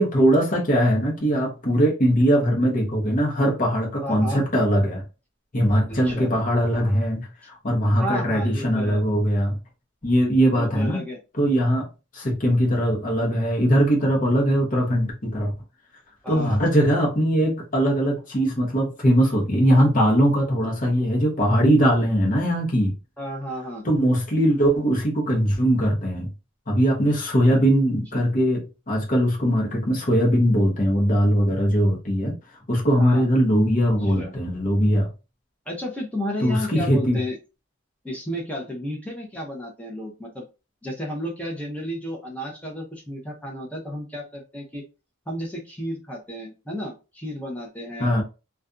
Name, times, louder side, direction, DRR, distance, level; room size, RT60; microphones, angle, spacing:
voice 1, 0.0-5.0 5.5-7.3 7.6-9.6 10.0-11.0 11.4-11.9 12.1-15.5 16.3-22.9 23.8-26.3 26.7-32.3 32.7-35.1 36.4-37.2 48.0-48.2, equal, 40° left, 0.8 m, -20 dB
voice 2, 4.0-4.4 5.9-6.3 8.0-9.0 10.5-11.2 16.2-16.6 23.2-23.8 27.5-27.6 28.1-28.2 33.0-33.3 34.0-34.3 35.7-37.4 38.0-40.4 40.8-44.8 45.3-48.2, equal, 5° left, 0.7 m, -32 dB
2.5 x 2.3 x 2.5 m
head